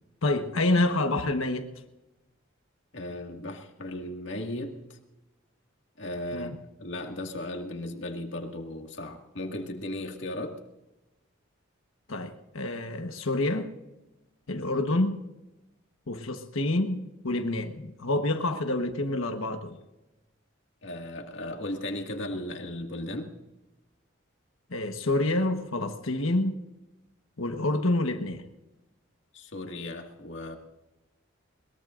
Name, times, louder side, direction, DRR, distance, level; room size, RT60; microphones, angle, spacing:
voice 1, 0.2-1.7 6.3-6.6 12.1-13.7 14.5-15.2 16.1-19.8 24.7-26.6 27.4-28.4, left 2 dB, 85° left, 5 dB, 1.3 m, -27 dB
voice 2, 2.9-5.0 6.0-10.6 20.8-23.4 29.3-30.6, left 1 dB, 60° left, 3 dB, 2.0 m, -36 dB
22.0 x 21.5 x 2.6 m, 0.98 s
head